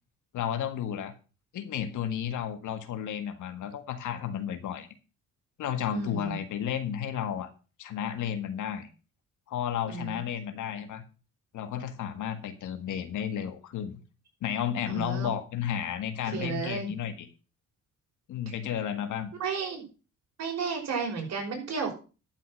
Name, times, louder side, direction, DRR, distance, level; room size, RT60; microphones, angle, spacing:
voice 1, 0.3-1.1 1.5-4.9 5.6-7.5 7.8-8.9 9.5-11.0 11.5-14.0 14.4-17.3 18.3-19.3, left 9 dB, 75° left, 9 dB, 1.7 m, -32 dB
voice 2, 5.9-6.4 9.8-10.2 14.9-15.3 16.3-16.9 18.5-18.6 19.4-19.8 20.4-21.9, right 5 dB, 60° right, 0 dB, 5.7 m, -33 dB
12.0 x 6.0 x 6.4 m, 0.34 s
cardioid pair, 90°, 30 cm